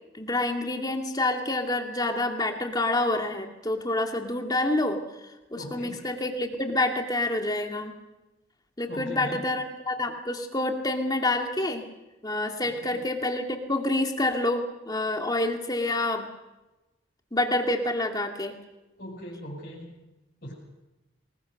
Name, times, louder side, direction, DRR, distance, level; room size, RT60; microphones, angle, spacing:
voice 1, 0.1-5.0 5.5-7.9 8.8-11.9 12.2-16.3 17.3-18.5, left 2 dB, 20° left, 3 dB, 2.4 m, -27 dB
voice 2, 5.5-6.0 8.9-9.4 12.6-13.0 19.0-20.0 20.4-20.5, equal, 50° left, -6 dB, 6.5 m, -39 dB
26.0 x 21.0 x 6.6 m, 1.0 s
head